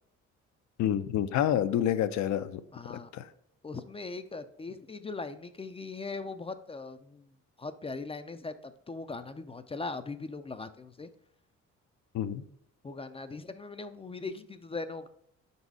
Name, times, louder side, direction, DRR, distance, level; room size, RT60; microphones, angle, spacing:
voice 1, 0.8-2.6 2.9-3.3 12.1-12.4, left 10 dB, 70° left, 0.5 m, -28 dB
voice 2, 2.7-3.1 3.6-7.3 7.6-11.1 12.8-15.1, left 3 dB, 20° left, 0.4 m, -40 dB
5.3 x 4.1 x 4.6 m
cardioid pair, 90°, 30 cm